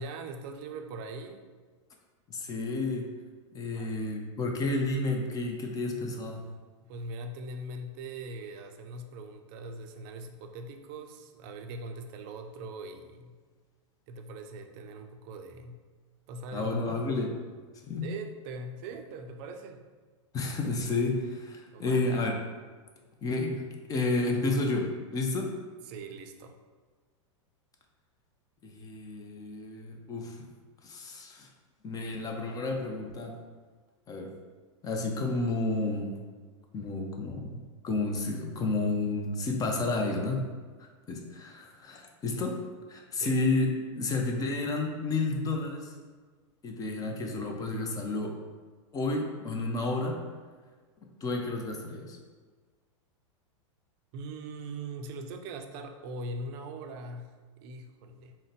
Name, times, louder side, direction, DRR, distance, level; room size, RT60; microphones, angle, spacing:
voice 1, 0.0-1.5 3.6-4.2 6.8-13.4 14.1-15.8 16.3-16.8 17.4-17.5 18.0-19.8 21.7-22.2 25.9-26.5 43.2-43.5 54.1-58.4, right 2 dB, 50° right, 6 dB, 0.4 m, -41 dB
voice 2, 2.3-3.1 3.5-6.5 16.5-17.4 17.8-18.1 20.3-22.3 23.2-23.6 23.9-25.5 28.6-30.4 30.8-31.5 31.8-33.3 34.1-34.3 34.8-36.2 36.7-40.4 41.1-42.6 42.9-43.7 44.0-45.9 46.6-48.4 48.9-50.2 51.2-52.2, left 2 dB, 25° left, 2 dB, 0.6 m, -31 dB
3.8 x 2.1 x 4.0 m, 1.5 s
hypercardioid pair, 120°, 16 cm